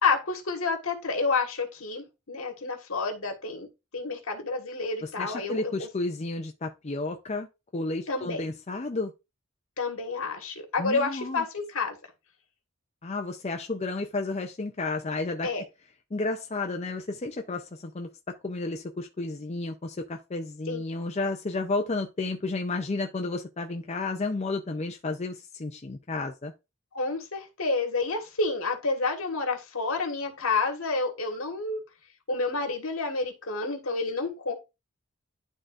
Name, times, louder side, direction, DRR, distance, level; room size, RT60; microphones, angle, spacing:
voice 1, 0.0-3.7 3.9-5.9 8.1-8.5 9.8-12.0 15.4-15.6 20.7-20.8 26.9-31.8 32.3-34.5, left 3 dB, 75° left, 1.6 m, -29 dB
voice 2, 5.0-7.5 7.7-9.1 10.8-11.4 13.0-15.5 16.1-26.5, left 3 dB, 30° left, 0.5 m, -32 dB
11.0 x 3.8 x 2.5 m
head